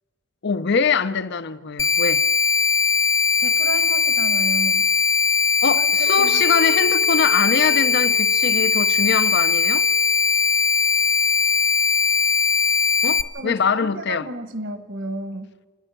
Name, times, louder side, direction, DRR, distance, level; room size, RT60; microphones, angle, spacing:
voice 1, 0.4-2.2 5.6-9.9 13.0-14.3, left 5 dB, 55° left, 0.6 m, -23 dB
sound 1, 1.8-13.2, left 6 dB, 15° left, 0.5 m, -19 dB
voice 2, 3.4-4.9 5.8-5.9 6.2-6.4 13.3-15.5, right 1 dB, 55° right, 1.4 m, -32 dB
Chink clink, 6.1-11.2, left 1 dB, 25° right, 0.8 m, -41 dB
29.5 x 10.0 x 9.0 m
head